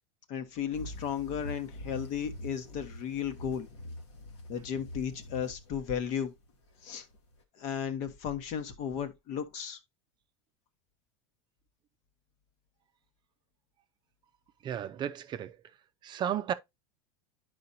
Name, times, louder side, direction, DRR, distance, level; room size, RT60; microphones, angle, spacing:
voice 1, 0.3-3.7 4.5-6.3 6.8-7.1 7.6-9.8, left 8 dB, 55° left, 1.2 m, -35 dB
sound 1, 0.7-7.4, left 1 dB, 85° left, 2.0 m, -45 dB
voice 2, 14.6-15.6 16.0-16.5, right 10 dB, 30° right, 0.5 m, -33 dB
9.4 x 5.0 x 2.6 m
supercardioid pair, 120°, 15 cm